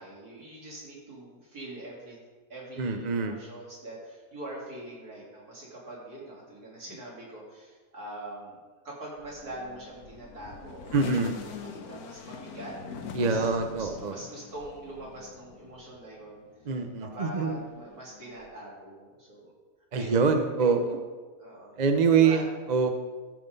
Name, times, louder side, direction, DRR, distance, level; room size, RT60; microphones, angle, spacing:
voice 1, 0.0-2.2 2.5-8.6 8.8-12.8 13.2-16.4 17.0-19.5 19.9-20.4 21.4-21.7 22.1-22.4, right 1 dB, 75° right, -5 dB, 3.9 m, -43 dB
voice 2, 2.8-3.4 10.9-11.3 13.1-14.2 16.7-17.6 19.9-21.0 21.8-22.9, right 5 dB, 35° right, 6 dB, 0.7 m, -25 dB
sound 1, 9.2-16.1 16.5-18.5, left 6 dB, 80° left, 1.4 m, -43 dB
13.5 x 6.0 x 5.4 m, 1.4 s
omnidirectional pair, 1.6 m